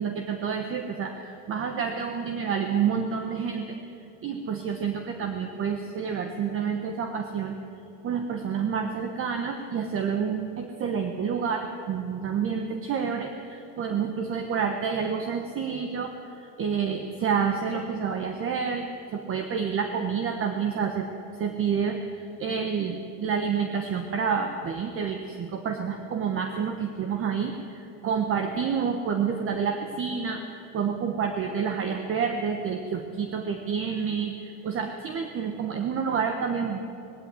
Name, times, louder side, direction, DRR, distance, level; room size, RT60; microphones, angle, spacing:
voice 1, 0.0-3.8 4.2-7.6 8.0-21.1 21.4-36.8, right 6 dB, 30° right, 5 dB, 1.3 m, -29 dB
19.0 x 17.0 x 9.6 m, 2.7 s
cardioid pair, 155°, 44 cm